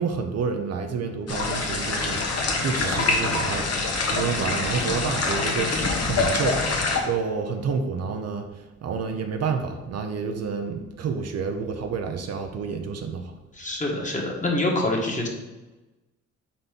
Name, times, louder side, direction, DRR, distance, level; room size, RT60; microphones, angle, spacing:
voice 1, 0.0-3.7 4.1-6.6 7.1-8.5 8.8-13.3, right 5 dB, 55° right, 5 dB, 0.7 m, -29 dB
sound 1, 1.3-7.0, left 3 dB, 55° left, 1.2 m, -25 dB
voice 2, 13.5-15.3, left 2 dB, 25° left, -1 dB, 1.6 m, -25 dB
4.3 x 4.2 x 5.3 m, 1.1 s
cardioid pair, 90°, 30 cm